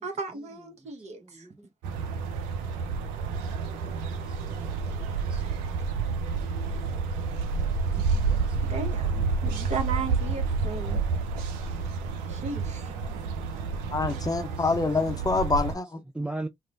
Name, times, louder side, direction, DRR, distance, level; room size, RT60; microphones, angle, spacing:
voice 1, 0.0-1.5 5.4-5.5 8.7-11.0 12.3-13.2, right 4 dB, 50° right, 1.0 m, -36 dB
voice 2, 1.2-1.7 3.8-4.2 4.5-5.0 5.2-5.4 6.6-6.8 7.9-8.6 13.3-13.8 14.3-14.7 16.1-16.5, right 2 dB, 5° right, 0.3 m, -40 dB
sound 1, 1.8-15.7, right 4 dB, 75° right, 0.5 m, -29 dB
voice 3, 13.9-16.0, left 3 dB, 25° left, 0.7 m, -26 dB
3.0 x 2.1 x 2.5 m
hypercardioid pair, 45°, 15 cm